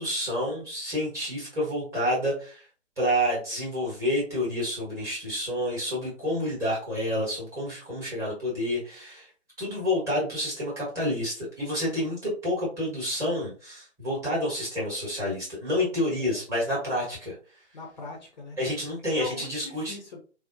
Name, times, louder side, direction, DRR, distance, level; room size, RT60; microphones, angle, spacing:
voice 1, 0.0-2.6 3.0-9.3 9.6-17.4 18.6-19.9, equal, 10° right, -6 dB, 1.1 m, -29 dB
voice 2, 16.1-16.4 17.7-18.6 19.1-20.2, left 3 dB, 40° left, 1 dB, 0.6 m, -40 dB
4.1 x 2.0 x 2.5 m, 0.37 s
figure-of-eight pair, 135°, 36 cm